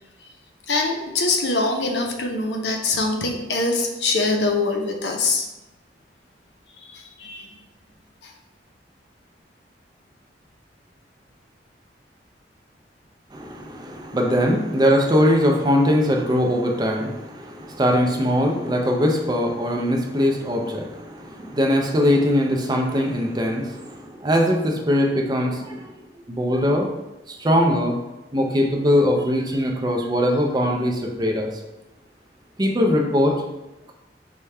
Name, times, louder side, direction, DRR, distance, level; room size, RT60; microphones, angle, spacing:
voice 1, 0.7-5.5 6.8-7.5 8.2-8.3, left 3 dB, 65° left, 2 dB, 0.6 m, -23 dB
voice 2, 13.3-25.9 26.3-26.9 27.3-28.0 28.3-31.6 32.6-33.4, equal, 25° right, 1 dB, 0.5 m, -21 dB
4.9 x 2.3 x 4.2 m, 0.97 s
head